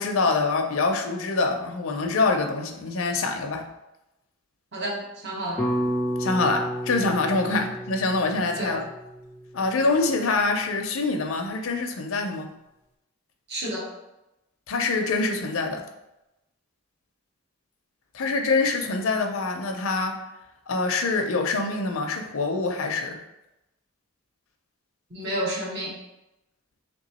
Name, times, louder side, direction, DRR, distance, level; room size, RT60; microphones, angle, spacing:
voice 1, 0.0-3.7 6.2-8.8 9.5-12.5 14.7-15.8 18.1-20.2 20.7-23.2, left 3 dB, 70° left, 4 dB, 0.5 m, -25 dB
voice 2, 4.7-5.6 7.5-7.6 8.6-8.7 13.5-13.9 25.1-25.9, right 1 dB, 50° right, -2 dB, 0.9 m, -30 dB
sound 1, 5.6-9.8, equal, 10° left, 0.4 m, -31 dB
3.3 x 3.0 x 4.1 m, 0.93 s
head